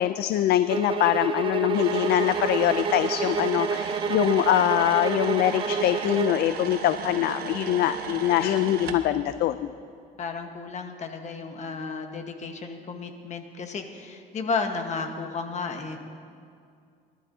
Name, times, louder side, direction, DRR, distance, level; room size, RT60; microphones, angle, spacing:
voice 1, 0.0-9.7, left 12 dB, 70° left, 12 dB, 0.4 m, -23 dB
sound 1, 0.7-6.4, right 6 dB, 30° right, 0.5 m, -29 dB
sound 2, 1.7-9.0, right 7 dB, 65° right, 1.0 m, -36 dB
voice 2, 10.2-16.0, left 4 dB, 45° left, 5 dB, 1.3 m, -33 dB
21.5 x 12.0 x 2.7 m, 2.3 s
cardioid pair, 110°, 17 cm